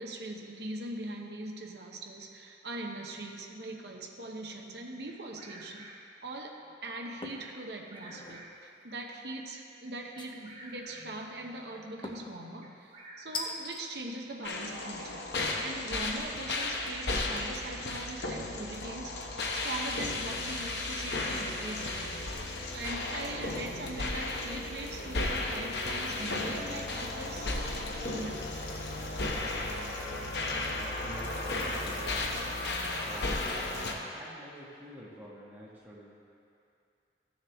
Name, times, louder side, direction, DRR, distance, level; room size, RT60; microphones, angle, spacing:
voice 1, 0.0-5.9 6.2-15.3 15.6-19.2 19.5-22.3 22.7-28.9, right 2 dB, 70° right, 1 dB, 0.8 m, -41 dB
Bird vocalization bird call bird song, 5.1-6.2 7.6-8.8 10.1-11.3 12.6-13.8, right 1 dB, 35° right, 0.9 m, -51 dB
sound 1, 7.2-7.5 8.0-8.4 10.2-10.7 12.0-12.4 13.3-13.8, left 3 dB, 25° left, 0.7 m, -40 dB
sound 2, 14.4-33.9, left 2 dB, 75° left, 0.9 m, -34 dB
voice 2, 30.6-32.3 33.0-33.6 34.1-36.2, equal, 10° right, -8 dB, 1.8 m, -48 dB
14.5 x 6.5 x 3.5 m, 2.6 s
head